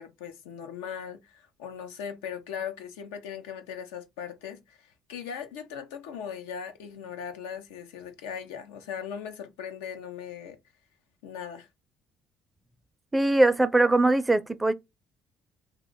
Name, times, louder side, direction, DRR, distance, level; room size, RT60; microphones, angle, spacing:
voice 1, 0.0-10.6 11.2-11.7, left 7 dB, 90° left, 0.5 m, -39 dB
voice 2, 13.1-14.7, right 2 dB, 15° right, 0.4 m, -21 dB
2.5 x 2.2 x 3.7 m
hypercardioid pair, 60°, 0 cm